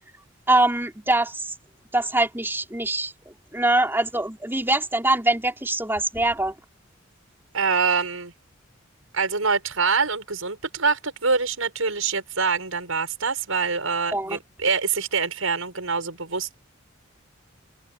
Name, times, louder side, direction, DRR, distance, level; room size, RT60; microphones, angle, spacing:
voice 1, 0.5-1.5 1.9-3.1 3.5-6.5 14.1-14.4, right 2 dB, 10° right, 4.6 m, -23 dB
voice 2, 7.5-8.3 9.1-16.6, right 5 dB, 80° right, 6.0 m, -25 dB
open air
head